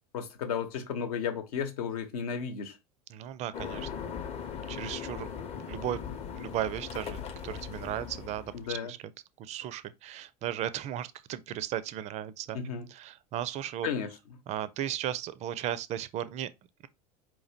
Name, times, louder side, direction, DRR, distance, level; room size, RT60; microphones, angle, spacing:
voice 1, 0.1-2.8 8.5-8.9 12.5-12.9 13.8-14.1, left 7 dB, 65° left, 0.9 m, -33 dB
voice 2, 3.1-4.1 4.7-6.0 6.3-9.0 9.4-12.6 12.9-13.9 14.5-16.5, right 11 dB, 35° right, 0.4 m, -36 dB
sound 1, 3.5-8.8, left 7 dB, 30° left, 0.8 m, -39 dB
4.7 x 3.0 x 2.7 m
figure-of-eight pair, 75°, 20 cm